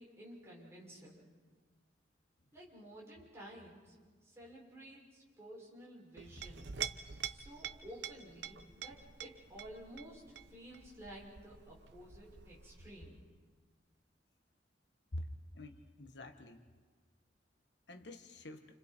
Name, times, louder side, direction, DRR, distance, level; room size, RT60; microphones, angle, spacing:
voice 1, 0.0-1.3 2.5-3.9 4.2-6.7 7.3-10.2 10.5-13.2, equal, 15° right, -5 dB, 6.3 m, -53 dB
Chink clink, 6.2-13.3, right 8 dB, 70° right, 0.9 m, -47 dB
voice 2, 15.5-16.6 17.9-18.7, left 1 dB, 70° left, 6 dB, 1.4 m, -46 dB
29.5 x 28.5 x 4.5 m, 1.5 s
head